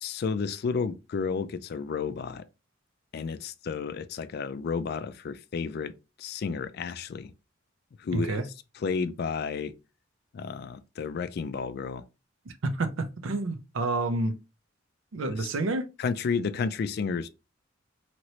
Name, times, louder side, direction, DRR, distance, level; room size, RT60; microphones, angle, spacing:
voice 1, 0.0-2.4 3.1-5.9 6.2-7.3 8.0-8.4 8.8-9.7 10.3-12.0 15.4-15.5 16.0-17.3, left 5 dB, 50° left, 0.3 m, -31 dB
voice 2, 8.1-8.5 12.6-14.4 15.1-15.9, right 2 dB, 75° right, 0.5 m, -29 dB
2.9 x 2.7 x 3.0 m
head